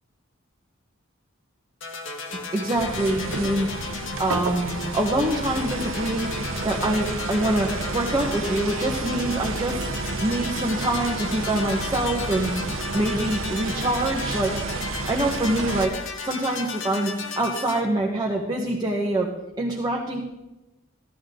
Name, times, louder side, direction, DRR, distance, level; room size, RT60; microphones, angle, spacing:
sound 1, 1.8-17.8, left 4 dB, 70° left, 1.6 m, -35 dB
voice 1, 2.5-3.7 4.2-6.3 6.6-9.9 10.2-12.5 12.9-14.5 15.1-15.9 16.2-19.3 19.6-20.2, right 1 dB, 20° right, -1 dB, 1.4 m, -25 dB
sound 2, 2.8-15.9, right 3 dB, 85° right, 0.9 m, -31 dB
16.0 x 12.0 x 3.9 m, 1.0 s
head